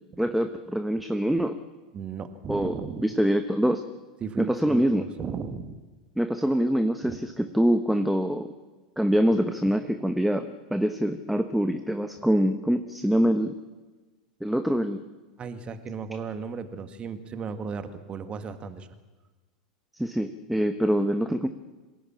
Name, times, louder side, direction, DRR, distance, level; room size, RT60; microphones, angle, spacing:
voice 1, 0.2-1.6 2.5-2.8 3.0-3.8 4.4-5.0 6.2-8.5 9.0-13.6 14.4-15.0 20.0-21.5, equal, ahead, 8 dB, 1.1 m, -24 dB
voice 2, 1.9-3.0 4.2-5.8 7.0-7.2 9.6-9.7 15.4-18.9, right 5 dB, 25° right, 9 dB, 1.9 m, -35 dB
26.5 x 17.0 x 8.8 m, 1.3 s
figure-of-eight pair, 90°, 4 cm